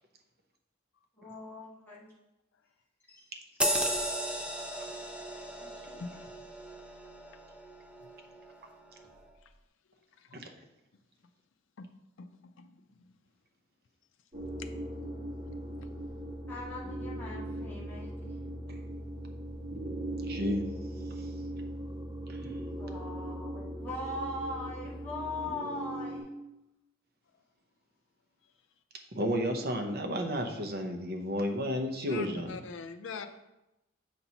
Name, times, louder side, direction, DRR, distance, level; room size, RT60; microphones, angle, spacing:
voice 1, 1.2-2.1 3.1-3.3 5.6-6.0 16.5-18.3 22.8-26.2 33.1-33.3, left 2 dB, 10° left, -7 dB, 1.9 m, -41 dB
sound 1, 3.6-8.6 9.0-9.2, right 1 dB, 5° right, 0.5 m, -35 dB
voice 2, 12.2-13.1 14.6-14.7 32.1-33.3, left 5 dB, 70° left, 8 dB, 0.4 m, -43 dB
sound 2, 14.3-26.2, right 1 dB, 25° right, 1.7 m, -39 dB
voice 3, 20.3-20.6 21.2-21.3 22.3-22.4 29.1-32.5, equal, 50° right, 3 dB, 0.8 m, -32 dB
7.7 x 5.5 x 2.9 m, 0.92 s
head